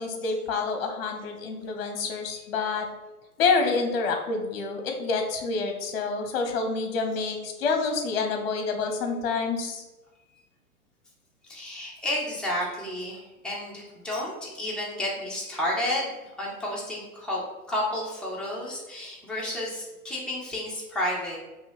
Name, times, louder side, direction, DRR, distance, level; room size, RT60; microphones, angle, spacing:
voice 1, 0.0-2.9 3.4-9.8, left 4 dB, 40° left, 4 dB, 0.9 m, -27 dB
voice 2, 11.4-17.4 17.7-21.4, left 1 dB, ahead, -5 dB, 0.6 m, -31 dB
5.4 x 2.8 x 3.0 m, 1.1 s
figure-of-eight pair, 105°, 44 cm